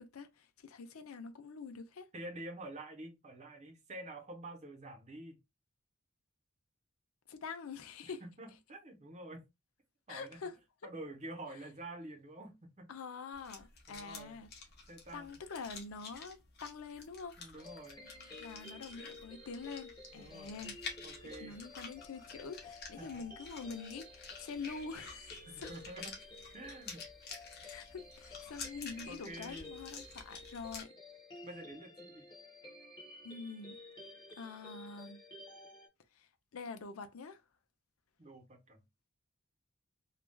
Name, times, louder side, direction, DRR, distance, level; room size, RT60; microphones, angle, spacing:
voice 1, 0.0-2.1 7.3-8.2 10.1-10.6 12.9-14.5 15.1-17.4 18.4-20.8 21.4-25.7 27.6-30.9 33.2-33.8 34.4-35.2 36.1-37.4, left 5 dB, 85° left, 0.5 m, -46 dB
voice 2, 2.1-5.4 8.0-9.4 10.1-10.4 10.8-12.9 13.9-14.4 14.9-15.4 17.4-18.0 20.1-20.7 21.0-21.6 23.0-23.3 25.5-26.1 26.5-27.0 29.1-29.7 31.4-32.2 38.2-38.8, right 1 dB, 35° right, 0.8 m, -48 dB
sound 1, 13.3-30.8, left 4 dB, 50° left, 0.9 m, -50 dB
sound 2, 17.6-35.9, left 2 dB, 20° left, 1.1 m, -53 dB
3.2 x 2.3 x 2.2 m
head